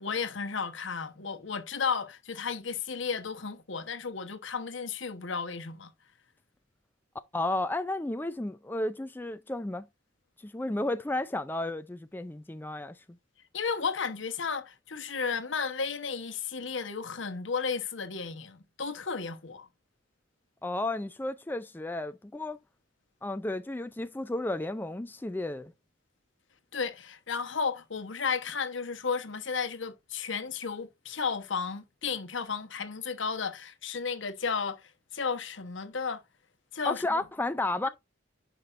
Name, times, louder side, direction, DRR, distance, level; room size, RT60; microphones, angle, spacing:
voice 1, 0.0-5.9 13.5-19.7 26.7-36.2 36.7-37.2, left 5 dB, 75° left, 1.1 m, -33 dB
voice 2, 7.3-9.9 10.4-13.2 20.6-22.6 23.2-25.7 36.9-37.9, left 2 dB, 10° left, 0.4 m, -32 dB
10.0 x 5.1 x 2.5 m
head